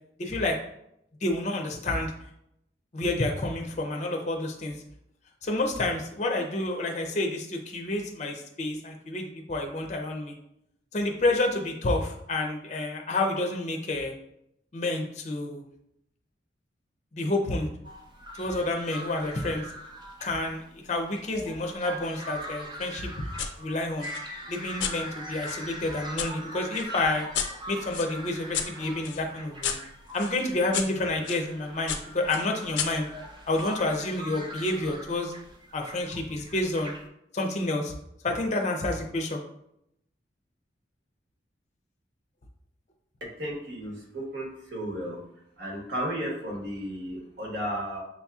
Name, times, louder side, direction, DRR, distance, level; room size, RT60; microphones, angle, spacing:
voice 1, 0.2-0.6 1.2-2.1 2.9-4.7 5.4-10.3 10.9-14.1 14.7-15.6 17.1-17.7 18.4-19.6 20.2-23.1 23.6-24.1 24.5-27.3 27.7-29.7 30.1-33.1 33.5-35.3 35.7-36.9 37.3-37.9 38.2-39.4, left 2 dB, 40° left, 2 dB, 0.5 m, -29 dB
sound 1, 17.8-37.1, right 1 dB, 25° right, 0.5 m, -42 dB
sound 2, 23.4-23.5 24.0-26.3 26.8-31.4 31.9-33.8, left 7 dB, 85° left, 0.5 m, -35 dB
voice 2, 43.2-45.2 45.6-48.0, equal, 65° right, -1 dB, 1.3 m, -34 dB
6.1 x 2.7 x 2.3 m, 0.76 s
head